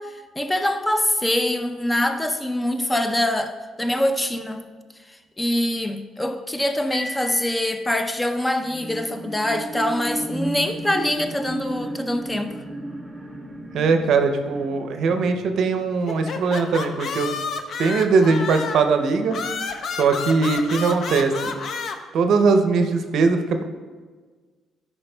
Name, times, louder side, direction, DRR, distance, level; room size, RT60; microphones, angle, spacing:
voice 1, 0.0-4.6 5.1-12.6, left 1 dB, 15° left, 8 dB, 0.5 m, -24 dB
Piano, 6.9-8.9, equal, 80° left, 1.3 m, -38 dB
sound 1, 8.6-16.4 16.9-17.0, right 1 dB, 10° right, 0.8 m, -34 dB
voice 2, 13.7-17.3 17.8-19.4 20.0-21.6 22.1-23.6, right 4 dB, 70° right, 6 dB, 0.5 m, -20 dB
sound 2, 16.1-18.9 19.3-22.0, left 5 dB, 60° left, 0.5 m, -30 dB
11.0 x 4.4 x 2.2 m, 1.4 s
supercardioid pair, 65°, 0 cm